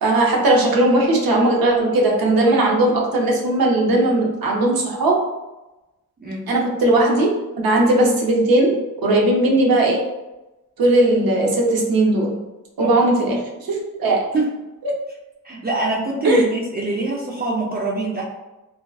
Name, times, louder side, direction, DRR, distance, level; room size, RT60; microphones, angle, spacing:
voice 1, 0.0-5.2 6.5-7.3 7.6-10.0 10.8-12.4 12.8-14.3 16.2-16.4, right 2 dB, 75° right, -1 dB, 0.7 m, -18 dB
voice 2, 6.2-6.5 12.8-12.9 14.3-14.5 15.4-18.2, right 2 dB, 30° right, -4 dB, 0.3 m, -24 dB
2.6 x 2.1 x 2.2 m, 1.0 s
wide cardioid pair, 110°, 36 cm